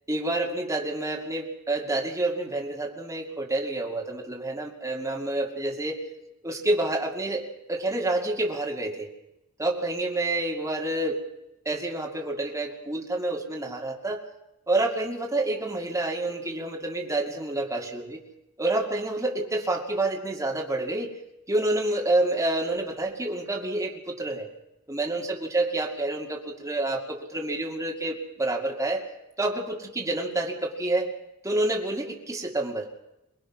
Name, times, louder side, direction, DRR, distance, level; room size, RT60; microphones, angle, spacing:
voice 1, 0.1-6.0 6.4-9.1 9.6-11.2 11.7-14.2 14.7-18.2 18.6-21.2 21.5-24.5 24.9-29.1 29.4-31.1 31.4-32.9, right 2 dB, 15° right, -1 dB, 2.4 m, -28 dB
23.5 x 20.5 x 6.1 m, 0.89 s
head